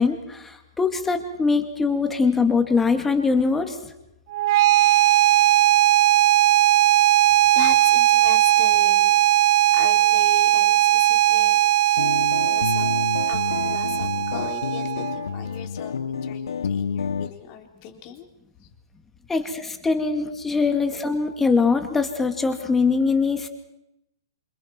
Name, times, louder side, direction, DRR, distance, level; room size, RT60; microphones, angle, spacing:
voice 1, 0.0-3.8 19.3-23.5, left 4 dB, 10° left, 6 dB, 2.4 m, -22 dB
sound 1, 4.3-15.3, right 14 dB, 45° right, 0.8 m, -18 dB
voice 2, 6.9-9.2 9.7-11.6 11.8-12.1 12.4-12.9 13.3-15.9 16.2-18.3 18.6-18.7, left 10 dB, 35° left, 2 dB, 3.7 m, -38 dB
sound 2, 12.0-17.3, left 6 dB, 75° left, 0.8 m, -29 dB
28.0 x 26.5 x 4.7 m, 0.88 s
hypercardioid pair, 130°, 2 cm